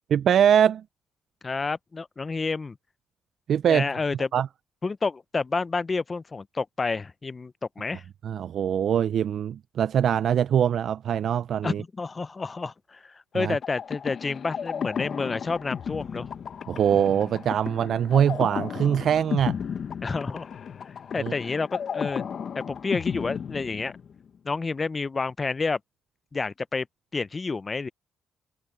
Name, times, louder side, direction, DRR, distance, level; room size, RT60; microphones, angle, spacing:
voice 1, 0.1-0.8 3.5-3.9 4.3-4.5 8.2-11.8 13.3-13.6 16.7-19.6 21.2-21.3, right 9 dB, 65° right, 0.4 m, -23 dB
voice 2, 1.4-2.8 3.7-4.3 4.8-8.0 11.6-16.3 20.0-20.5 21.1-22.2 22.5-23.9 24.4-25.8 26.3-26.9 27.1-27.9, left 4 dB, 30° left, 0.5 m, -29 dB
sound 1, 13.6-24.3, left 7 dB, 55° left, 0.9 m, -34 dB
cardioid pair, 90°, 0 cm